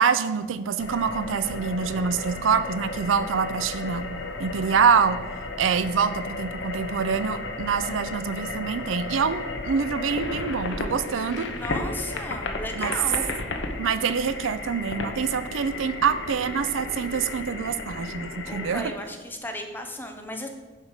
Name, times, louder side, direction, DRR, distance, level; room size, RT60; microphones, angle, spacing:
voice 1, 0.0-4.1 4.4-5.2 5.6-11.5 12.8-12.9 13.8-18.9, right 6 dB, 90° right, 13 dB, 0.5 m, -25 dB
sound 1, 0.8-18.8, left 2 dB, 65° left, 0.9 m, -34 dB
voice 2, 11.5-13.2 18.5-20.5, left 1 dB, 10° left, 4 dB, 0.8 m, -35 dB
7.3 x 4.8 x 6.6 m, 1.3 s
head